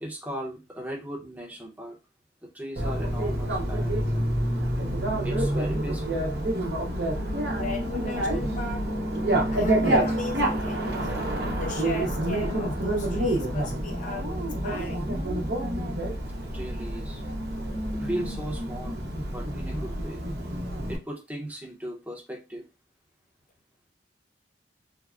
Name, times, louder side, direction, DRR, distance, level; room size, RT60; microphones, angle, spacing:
voice 1, 0.0-2.0 2.5-4.2 4.5-4.6 5.2-6.2 16.5-17.2 17.9-19.0 19.3-20.2 20.9-22.6, equal, 10° right, 0.7 m, -37 dB
Bicycle, 2.8-21.0, right 1 dB, 65° right, 0.8 m, -28 dB
voice 2, 7.5-8.9 9.5-11.1 11.5-15.1, left 3 dB, 45° left, 0.4 m, -37 dB
3.4 x 2.1 x 2.4 m
head